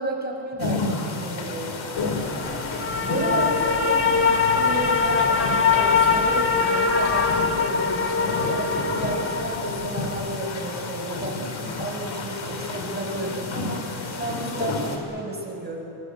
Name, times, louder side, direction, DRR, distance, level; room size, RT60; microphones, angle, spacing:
voice 1, 0.0-1.8 3.0-5.3 5.6-11.4 11.8-15.8, right 1 dB, 20° right, 0 dB, 6.1 m, -32 dB
sound 1, 0.6-15.0, left 3 dB, 65° left, 3.9 m, -31 dB
sound 2, 2.0-10.3, left 5 dB, 25° left, 1.5 m, -23 dB
24.5 x 24.0 x 8.3 m, 2.9 s
cardioid pair, 105°, 49 cm